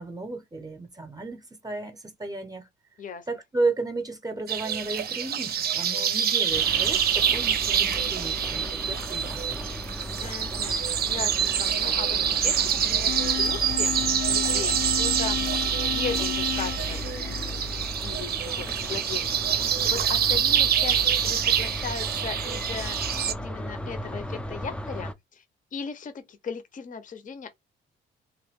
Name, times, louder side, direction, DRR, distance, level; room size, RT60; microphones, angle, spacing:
voice 1, 0.0-2.7 3.3-9.7, right 3 dB, 20° right, 0.7 m, -33 dB
sound 1, 4.5-23.3, right 8 dB, 50° right, 0.5 m, -26 dB
sound 2, 6.5-25.1, left 1 dB, 5° left, 0.4 m, -36 dB
voice 2, 10.2-14.0 14.3-25.4 25.7-27.5, left 6 dB, 40° left, 0.7 m, -38 dB
sound 3, 13.1-18.1, left 9 dB, 75° left, 0.6 m, -34 dB
3.0 x 2.2 x 3.4 m
cardioid pair, 90°, 20 cm